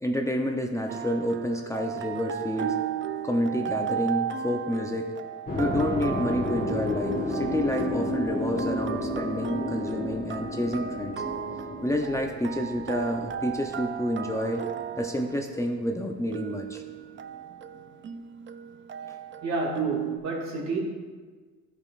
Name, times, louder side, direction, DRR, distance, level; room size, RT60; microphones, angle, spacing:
voice 1, 0.0-2.8 3.2-5.1 5.6-11.2 11.8-14.7 15.0-16.8, equal, 10° left, 1 dB, 0.6 m, -29 dB
sound 1, 0.9-20.2, right 9 dB, 40° right, 0.4 m, -35 dB
sound 2, 5.5-15.6, left 1 dB, 30° left, 1.5 m, -32 dB
voice 2, 19.4-20.8, right 2 dB, 65° right, -2 dB, 2.3 m, -30 dB
12.5 x 5.2 x 2.5 m, 1.4 s
cardioid pair, 90°, 30 cm